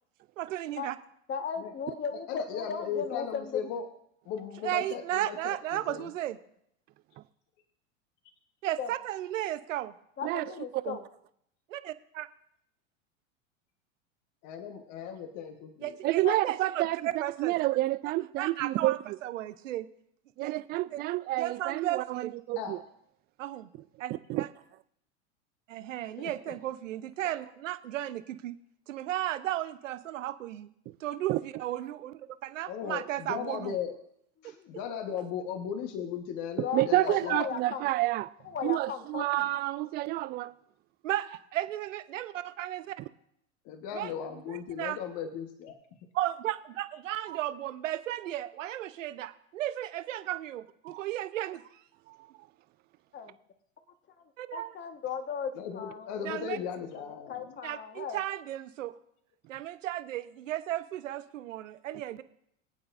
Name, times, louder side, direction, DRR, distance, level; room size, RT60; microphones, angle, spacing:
voice 1, 0.4-1.0 4.6-6.4 8.6-9.9 11.7-12.3 15.8-17.5 18.4-19.9 20.4-20.6 20.9-21.0 21.4-22.3 23.4-23.7 24.0-24.1 24.4-24.5 25.7-28.5 28.9-30.7 31.0-33.7 34.4-34.5 41.0-43.0 43.9-44.1 44.5-45.0 46.1-51.7 54.4-54.7 56.2-56.6 57.6-58.9 59.5-62.2, right 13 dB, 70° right, 0.9 m, -34 dB
voice 2, 1.3-3.6 8.8-8.9 10.2-11.0 16.2-16.4 34.4-34.7 36.6-37.9 38.4-39.5 53.1-53.4 54.5-56.7 56.9-57.0 57.3-58.2, left 6 dB, 30° left, 1.4 m, -36 dB
voice 3, 2.1-3.9 4.2-6.1 14.4-16.0 22.6-22.8 26.2-26.3 32.7-33.9 34.4-37.4 43.6-45.7 55.5-57.6, left 8 dB, 45° left, 1.3 m, -37 dB
voice 4, 16.0-17.0 17.4-19.2 20.4-22.8 24.3-24.5 31.3-31.4 36.7-38.3 38.6-40.5 47.3-47.4 50.9-51.0 52.1-52.2, right 17 dB, 25° right, 0.3 m, -29 dB
23.0 x 8.8 x 2.6 m
hypercardioid pair, 95°, 39 cm